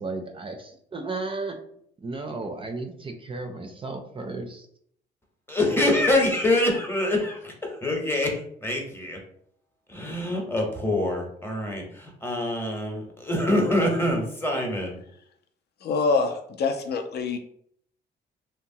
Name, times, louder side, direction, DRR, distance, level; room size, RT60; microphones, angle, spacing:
voice 1, 0.0-1.6 2.0-4.7, right 3 dB, 25° right, 5 dB, 0.4 m, -34 dB
voice 2, 5.5-9.2 9.9-15.0, left 1 dB, 10° left, 0 dB, 0.8 m, -25 dB
voice 3, 15.8-17.4, left 4 dB, 55° left, 7 dB, 0.5 m, -25 dB
2.8 x 2.1 x 2.6 m, 0.67 s
cardioid pair, 90°, 20 cm